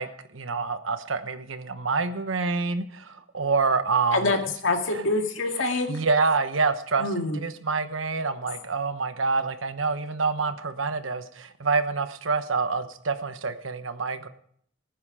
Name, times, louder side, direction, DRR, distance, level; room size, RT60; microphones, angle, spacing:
voice 1, 0.0-4.3 4.9-5.0 5.9-14.3, right 4 dB, 90° right, 10 dB, 1.1 m, -27 dB
voice 2, 4.6-6.0 7.0-7.4 8.5-8.6, left 2 dB, 75° left, 4 dB, 2.1 m, -25 dB
19.0 x 9.6 x 4.9 m, 0.66 s
head